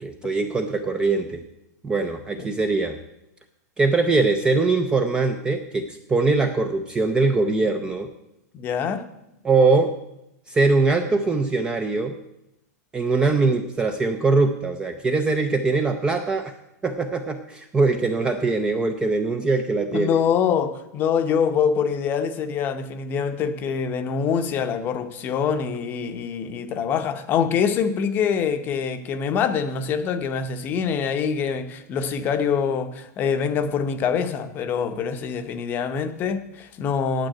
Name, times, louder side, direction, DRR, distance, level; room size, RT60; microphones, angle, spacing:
voice 1, 0.0-1.4 1.8-3.0 3.8-8.1 9.4-9.9 10.5-12.2 12.9-16.5 16.8-20.2, right 3 dB, 10° right, 7 dB, 0.4 m, -22 dB
voice 2, 8.5-9.0 19.9-37.3, left 7 dB, 20° left, 9 dB, 0.7 m, -25 dB
9.1 x 8.3 x 8.6 m, 0.86 s
supercardioid pair, 170°, 9 cm